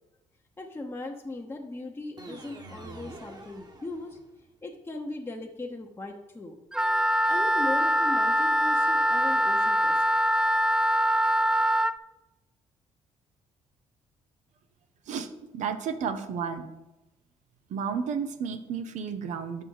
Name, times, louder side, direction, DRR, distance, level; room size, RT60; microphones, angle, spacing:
voice 1, 0.6-4.2 4.6-6.6 7.3-10.0, left 2 dB, 20° left, 0 dB, 0.9 m, -38 dB
sound 1, 2.2-4.5, right 2 dB, 30° right, 1.4 m, -46 dB
Wind instrument woodwind instrument, 6.7-11.9, equal, 5° right, 0.3 m, -23 dB
voice 2, 15.5-16.7 17.7-19.6, right 6 dB, 70° right, 9 dB, 0.8 m, -32 dB
7.8 x 6.1 x 4.7 m, 1.0 s
supercardioid pair, 75°, 13 cm